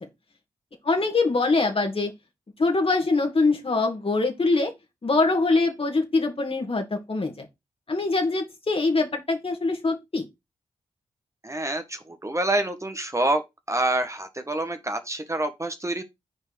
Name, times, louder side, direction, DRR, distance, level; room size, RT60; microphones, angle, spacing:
voice 1, 0.8-2.1 2.6-4.7 5.0-7.4 7.9-10.2, left 3 dB, 45° left, 2.3 m, -23 dB
voice 2, 11.4-13.4 13.7-16.0, right 1 dB, 20° right, 1.4 m, -27 dB
6.4 x 4.5 x 6.2 m
cardioid pair, 45°, 13 cm